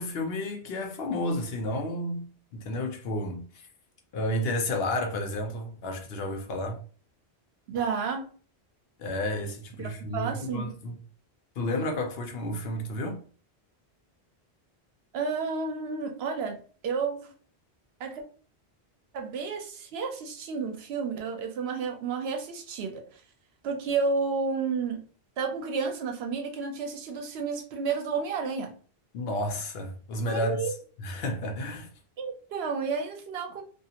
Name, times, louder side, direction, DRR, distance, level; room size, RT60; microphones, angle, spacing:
voice 1, 0.0-3.7 4.1-6.8 9.0-11.0 11.6-13.2 29.1-30.6 31.0-31.9, left 1 dB, 70° left, 0.9 m, -31 dB
voice 2, 7.7-8.3 9.8-10.7 15.1-17.3 18.0-18.2 19.1-23.0 23.6-25.0 25.4-28.8 30.3-30.7 32.2-33.6, right 5 dB, 75° right, 0.8 m, -31 dB
2.4 x 2.4 x 2.8 m
omnidirectional pair, 1.1 m